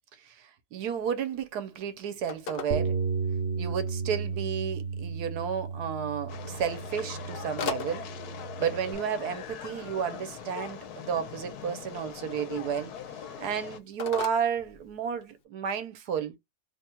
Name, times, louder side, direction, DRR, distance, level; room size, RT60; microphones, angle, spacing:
voice 1, 0.2-3.0 3.6-8.0 8.6-12.9 13.4-16.3, right 7 dB, 80° right, 1.3 m, -32 dB
Telephone, 0.9-15.4, left 7 dB, 60° left, 0.6 m, -44 dB
sound 1, 2.7-9.0, right 5 dB, 60° right, 1.1 m, -34 dB
sound 2, 6.3-13.8, left 8 dB, 80° left, 1.3 m, -41 dB
3.1 x 2.3 x 4.2 m
omnidirectional pair, 1.7 m